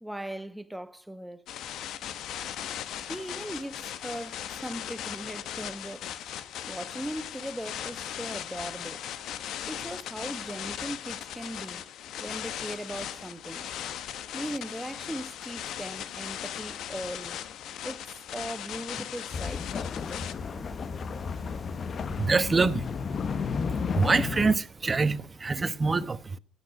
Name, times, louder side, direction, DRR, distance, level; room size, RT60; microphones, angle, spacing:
voice 1, 0.0-1.5 3.1-6.1 6.7-9.0 9.7-11.9 12.2-13.7 14.3-17.4 17.8-19.9, right 1 dB, 5° right, 1.2 m, -39 dB
sound 1, 1.5-20.3, left 10 dB, 65° left, 1.2 m, -38 dB
sound 2, 19.3-24.6, left 5 dB, 45° left, 1.0 m, -32 dB
voice 2, 22.2-22.9 23.9-26.4, right 4 dB, 30° right, 1.2 m, -25 dB
14.5 x 10.0 x 5.9 m
supercardioid pair, 70°, 0 cm